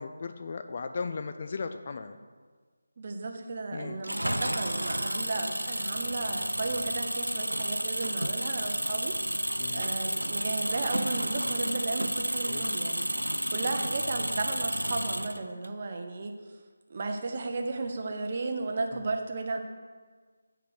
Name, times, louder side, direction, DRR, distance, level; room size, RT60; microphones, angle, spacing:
voice 1, 0.0-2.2 3.7-4.0 9.6-9.9 12.4-12.7 18.9-19.0, left 4 dB, 35° left, 8 dB, 0.3 m, -37 dB
voice 2, 3.0-9.2 9.5-16.4 16.9-19.6, right 3 dB, 35° right, 4 dB, 0.7 m, -34 dB
Engine, 4.0-15.7, right 1 dB, 85° right, 0.4 m, -31 dB
8.0 x 3.3 x 6.5 m, 1.5 s
figure-of-eight pair, 160°, 0 cm